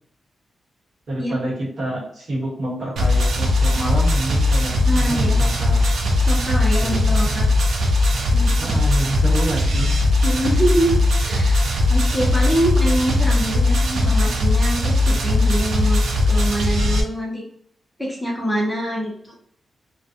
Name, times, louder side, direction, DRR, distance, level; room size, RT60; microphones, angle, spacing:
voice 1, 1.1-5.9 6.8-7.6 8.6-9.9, right 1 dB, 50° right, -4 dB, 1.0 m, -28 dB
sound 1, 3.0-17.0, left 2 dB, 80° right, 0.5 m, -19 dB
voice 2, 4.9-5.4 6.3-7.5 8.3-8.8 10.2-11.0 11.2-11.6 11.9-17.4 18.0-19.3, equal, 5° left, -3 dB, 0.5 m, -24 dB
2.4 x 2.2 x 2.6 m, 0.67 s
wide cardioid pair, 175°, 0 cm